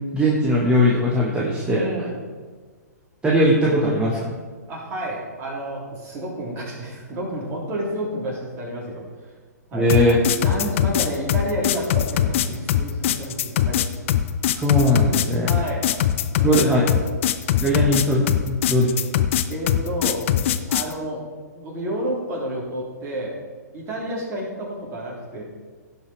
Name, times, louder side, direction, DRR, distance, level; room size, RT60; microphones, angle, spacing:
voice 1, 0.1-1.9 3.2-4.4 9.7-10.1 14.5-15.5 16.4-16.8 17.6-19.0, equal, 10° right, -4 dB, 1.4 m, -19 dB
voice 2, 1.6-2.2 4.7-9.0 9.7-9.9 10.4-13.8 15.5-15.9 16.4-17.0 19.5-20.3 20.7-21.2 21.5-23.4 23.7-25.4, right 1 dB, 25° right, -4 dB, 3.7 m, -30 dB
sound 1, 9.9-20.9, left 11 dB, 45° left, 0.6 m, -21 dB
16.5 x 5.7 x 4.7 m, 1.5 s
figure-of-eight pair, 120°, 9 cm